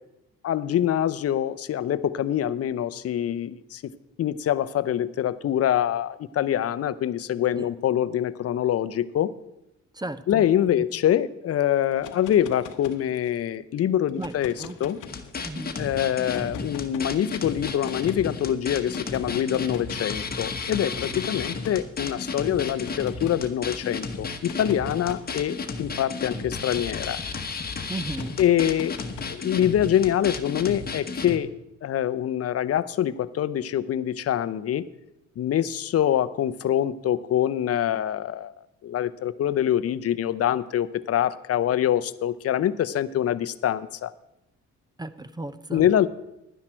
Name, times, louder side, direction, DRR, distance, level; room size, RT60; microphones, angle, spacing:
voice 1, 0.4-3.9 4.2-9.3 10.3-14.5 14.8-15.0 15.8-27.2 28.4-29.0 29.3-31.5 31.8-34.8 35.4-38.5 38.8-44.1 45.7-46.1, left 10 dB, 55° left, 16 dB, 0.6 m, -25 dB
voice 2, 9.9-10.4 10.8-10.9 14.2-14.3 14.6-14.8 15.4-15.7 27.9-28.4 45.0-45.9, right 2 dB, 15° right, 13 dB, 0.6 m, -34 dB
sound 1, 11.9-13.5 14.1-15.6 16.3-17.1 17.6-18.2 18.9-20.0 20.8-21.9 22.6-23.5 24.3-27.2 28.1-29.7, left 8 dB, 85° left, 1.0 m, -42 dB
sound 2, 15.1-31.4, left 4 dB, 30° left, 1.1 m, -33 dB
11.0 x 9.9 x 4.4 m, 0.88 s
cardioid pair, 90°, 30 cm